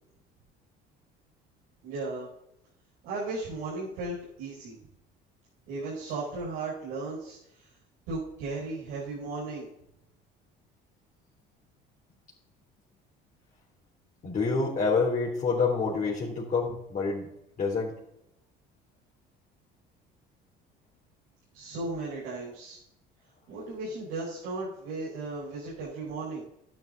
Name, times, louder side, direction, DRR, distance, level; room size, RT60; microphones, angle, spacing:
voice 1, 1.8-2.3 3.0-4.8 5.7-7.7 8.1-9.7 21.5-22.8 23.5-26.4, right 3 dB, 85° right, -8 dB, 4.9 m, -36 dB
voice 2, 14.2-17.3 17.6-17.9, left 4 dB, 40° left, -5 dB, 3.3 m, -27 dB
12.5 x 10.5 x 4.0 m, 0.80 s
supercardioid pair, 90°, 21 cm